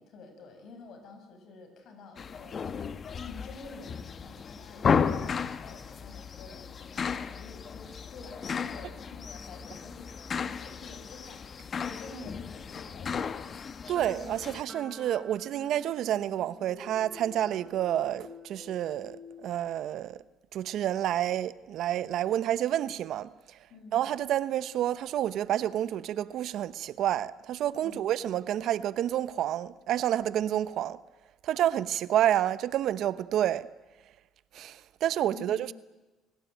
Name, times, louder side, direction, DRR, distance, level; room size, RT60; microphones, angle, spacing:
voice 1, 0.0-2.7 3.1-13.6 23.7-24.0 27.8-28.0 35.3-35.7, left 3 dB, 65° left, 6.5 m, -49 dB
sound 1, 2.2-14.6, left 6 dB, 45° left, 1.2 m, -34 dB
sound 2, 13.9-19.5, left 1 dB, ahead, 7.9 m, -48 dB
voice 2, 13.9-20.2 20.5-23.6 23.9-31.0 31.4-33.7 34.5-35.7, right 11 dB, 70° right, 0.9 m, -29 dB
27.0 x 17.5 x 9.2 m
supercardioid pair, 85°, 0 cm